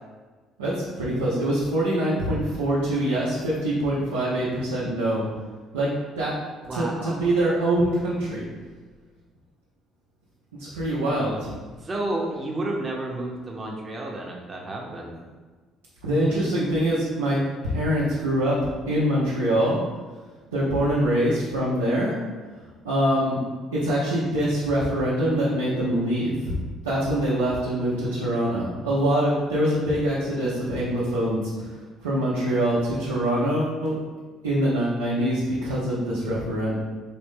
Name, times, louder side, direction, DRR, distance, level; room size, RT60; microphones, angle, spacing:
voice 1, 0.6-5.2 5.7-5.9 6.2-6.3 6.7-8.4 10.6-11.5 16.0-18.6 18.9-19.8 20.5-22.2 22.8-23.4 23.7-26.6 26.8-31.5 32.0-33.9 34.4-36.8, right 1 dB, 90° right, -9 dB, 0.7 m, -24 dB
voice 2, 6.7-7.2 11.8-15.1, right 1 dB, 30° right, -1 dB, 0.9 m, -31 dB
4.1 x 2.6 x 3.6 m, 1.4 s
hypercardioid pair, 55°, 0 cm